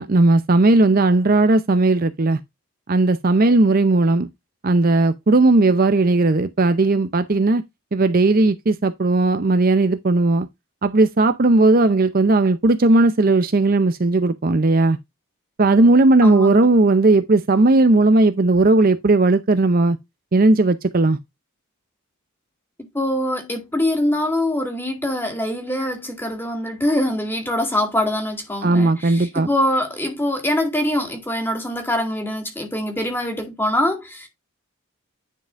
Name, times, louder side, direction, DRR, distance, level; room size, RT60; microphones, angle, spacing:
voice 1, 0.0-2.4 2.9-4.3 4.6-7.6 7.9-10.5 10.8-15.0 15.6-20.0 20.3-21.2 28.6-29.5, right 2 dB, 40° right, 0.6 m, -16 dB
voice 2, 16.2-16.7 22.9-34.3, left 1 dB, 10° left, 2.0 m, -23 dB
9.8 x 5.3 x 2.5 m
head